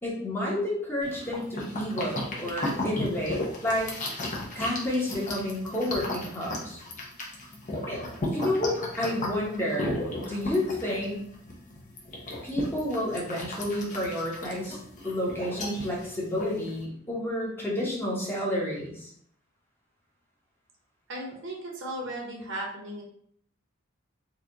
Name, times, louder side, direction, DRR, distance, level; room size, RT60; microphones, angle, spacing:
voice 1, 0.0-3.9 4.5-6.8 7.9-8.0 8.3-11.2 12.4-14.8 15.0-19.1, left 1 dB, 10° left, -5 dB, 1.0 m, -30 dB
sound 1, 1.0-16.8, left 1 dB, 40° left, 0.8 m, -35 dB
voice 2, 21.1-23.0, right 1 dB, 65° right, -1 dB, 1.0 m, -36 dB
3.9 x 2.4 x 2.9 m, 0.64 s
head